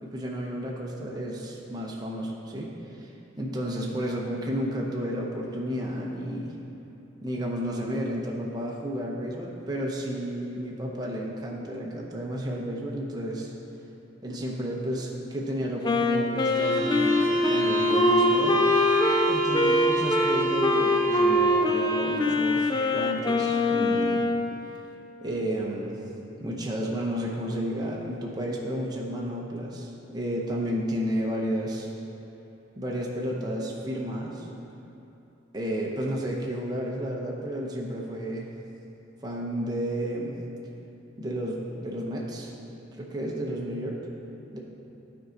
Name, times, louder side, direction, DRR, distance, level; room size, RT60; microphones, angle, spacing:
voice 1, 0.0-2.7 2.9-6.5 7.2-13.5 14.2-18.6 19.3-24.2 25.2-26.0 26.4-31.9 32.8-34.5 35.5-38.5 39.2-40.4 41.2-42.5 42.9-44.0 44.5-44.6, equal, 20° right, -3 dB, 0.7 m, -32 dB
Wind instrument woodwind instrument, 15.8-24.5, left 2 dB, 20° left, 0.4 m, -24 dB
sound 1, 16.5-21.4, right 1 dB, 80° right, 1.0 m, -26 dB
11.5 x 4.5 x 3.8 m, 2.8 s
head